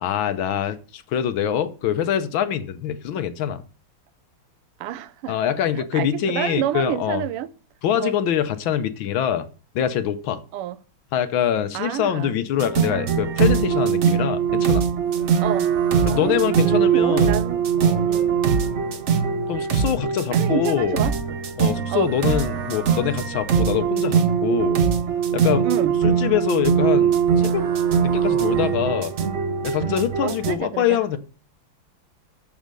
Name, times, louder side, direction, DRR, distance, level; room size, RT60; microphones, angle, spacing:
voice 1, 0.0-3.6 5.3-7.2 7.8-9.5 9.7-10.4 11.1-14.8 16.1-17.3 17.8-18.0 19.5-21.0 21.6-24.8 25.3-25.7 26.0-27.6 28.0-29.1 29.6-31.2, left 9 dB, 70° left, 1.5 m, -24 dB
voice 2, 4.8-5.4 5.8-7.5 8.0-8.1 10.5-10.8 11.7-12.3 15.4-15.7 16.1-17.6 18.0-18.3 20.3-21.1 21.9-22.1 25.6-25.9 30.2-31.0, right 11 dB, 85° right, 1.6 m, -28 dB
sound 1, 12.6-30.5, right 7 dB, 60° right, 0.7 m, -21 dB
7.4 x 7.1 x 6.7 m
omnidirectional pair, 2.4 m